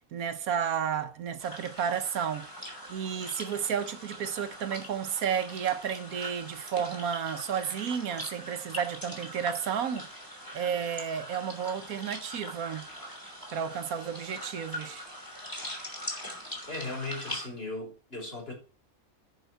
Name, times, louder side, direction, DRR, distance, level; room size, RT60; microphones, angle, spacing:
voice 1, 0.1-12.9 13.5-15.0, right 8 dB, 80° right, 1.3 m, -32 dB
sound 1, 1.4-17.5, equal, 15° left, 3.2 m, -42 dB
voice 2, 16.6-18.5, left 2 dB, 40° left, 4.8 m, -37 dB
13.0 x 5.4 x 4.5 m
omnidirectional pair, 1.5 m